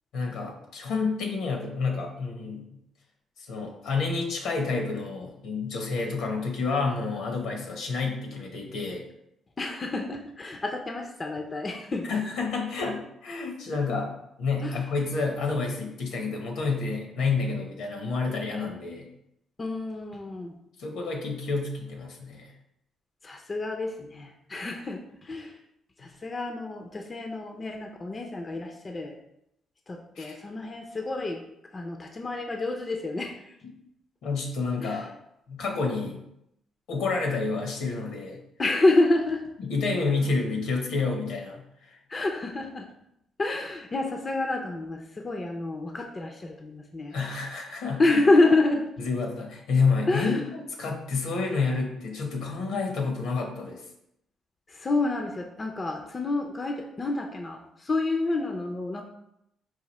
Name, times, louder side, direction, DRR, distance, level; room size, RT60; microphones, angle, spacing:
voice 1, 0.1-2.8 3.4-9.0 12.1-14.1 14.4-19.1 20.8-22.5 26.0-26.1 30.2-30.4 34.2-35.1 35.5-36.2 36.9-38.4 39.6-42.0 47.1-48.2 49.0-50.4 50.8-53.8, left 4 dB, 80° left, 2 dB, 1.1 m, -29 dB
voice 2, 9.6-12.1 14.6-14.8 19.6-20.5 23.2-25.6 26.0-29.2 29.9-31.4 31.7-33.6 34.8-35.1 38.6-39.4 42.1-42.9 43.4-47.2 48.0-48.8 50.1-50.4 54.7-59.0, left 2 dB, 30° left, 3 dB, 0.5 m, -28 dB
4.8 x 2.6 x 4.1 m, 0.80 s
cardioid pair, 85°, 0 cm